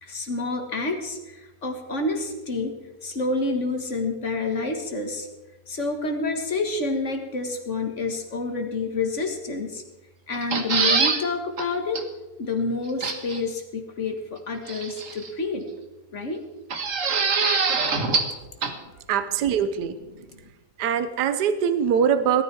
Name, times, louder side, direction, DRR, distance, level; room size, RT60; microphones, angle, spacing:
voice 1, 0.0-2.8 3.0-5.3 5.7-9.8 10.3-12.0 12.4-15.7 16.1-16.4 20.3-20.4, left 3 dB, 45° left, 5 dB, 1.9 m, -28 dB
sound 1, 10.3-11.2 11.6-11.7 12.0-12.1 13.0-13.4 14.7-15.3 16.7-18.4 18.6-18.7, right 4 dB, 50° right, 1.7 m, -23 dB
voice 2, 19.1-20.0 20.8-22.4, right 8 dB, 75° right, 11 dB, 1.4 m, -22 dB
17.5 x 13.0 x 4.7 m, 1.1 s
omnidirectional pair, 1.8 m